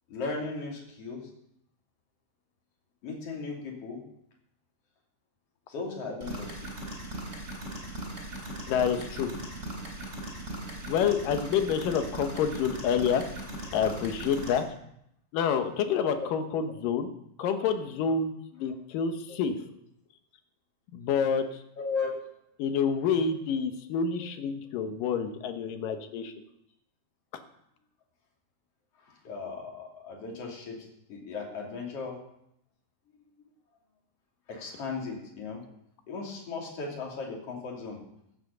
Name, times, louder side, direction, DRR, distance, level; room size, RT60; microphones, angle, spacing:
voice 1, 0.1-1.3 3.0-4.0 5.7-6.7 19.3-19.4 21.8-22.1 29.2-32.2 34.5-35.6 36.1-38.0, left 4 dB, 45° left, -1 dB, 3.5 m, -36 dB
sound 1, 6.2-14.6, right 1 dB, 20° right, 3.9 m, -39 dB
voice 2, 8.7-9.3 10.9-13.2 13.7-14.6 15.3-17.1 17.4-19.6 20.9-21.5 22.6-26.3, left 7 dB, 80° left, 7 dB, 2.7 m, -28 dB
15.5 x 7.6 x 6.8 m, 0.76 s
omnidirectional pair, 3.9 m